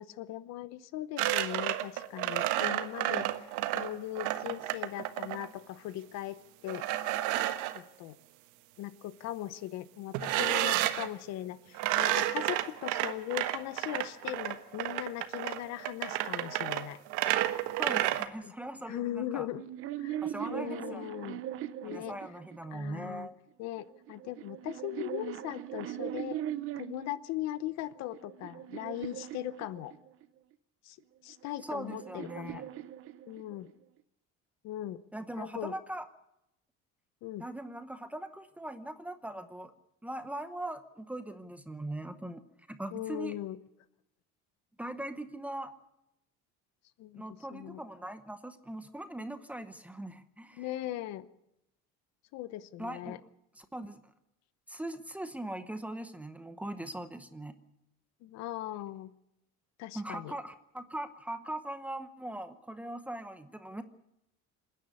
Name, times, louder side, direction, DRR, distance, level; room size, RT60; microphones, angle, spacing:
voice 1, 0.0-3.3 3.7-6.8 7.7-8.2 8.8-17.0 18.4-18.5 18.9-19.6 20.0-20.2 20.5-21.4 21.8-22.1 22.7-23.3 23.6-26.4 26.8-29.9 30.8-31.0 31.2-32.6 33.3-33.7 34.6-35.0 35.4-35.7 37.2-37.4 42.9-43.6 47.0-47.2 47.5-47.8 50.6-51.3 52.3-53.2 58.2-59.1 59.8-60.4, left 14 dB, 60° left, 15 dB, 0.9 m, -39 dB
sound 1, 1.2-5.5 6.7-7.8 10.1-11.1 11.7-18.3, right 14 dB, 80° right, 1.4 m, -31 dB
voice 2, 17.8-19.5 20.2-21.0 21.8-23.4 31.6-32.7 35.1-36.1 37.4-39.7 40.0-42.4 42.7-43.4 44.8-45.7 47.1-50.7 52.8-53.2 53.6-54.0 54.7-57.6 59.9-63.8, right 1 dB, 5° right, 9 dB, 0.8 m, -40 dB
sound 2, 19.5-22.9 23.8-27.2 27.8-30.3 31.3-33.7, right 12 dB, 45° right, 0.8 m, -40 dB
27.0 x 10.0 x 9.7 m, 0.84 s
cardioid pair, 175°, 30 cm